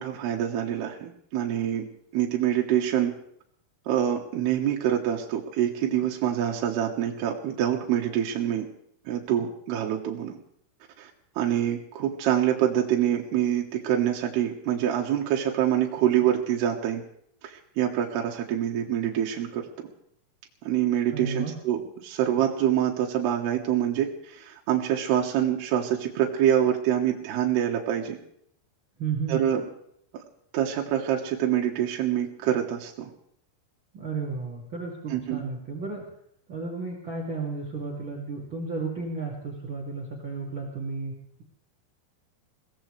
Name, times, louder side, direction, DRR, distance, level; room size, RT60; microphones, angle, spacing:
voice 1, 0.0-1.9 2.1-3.1 3.9-8.7 9.1-10.4 11.0-11.1 11.4-17.0 17.4-19.7 20.6-28.2 29.3-29.6 30.1-30.2 30.5-33.1 35.1-35.4, right 10 dB, 75° right, 0 dB, 3.3 m, -26 dB
voice 2, 21.1-21.5 29.0-29.4 33.9-36.0 36.5-41.4, right 4 dB, 35° right, -2 dB, 2.5 m, -33 dB
22.0 x 17.5 x 3.3 m, 0.70 s
omnidirectional pair, 4.7 m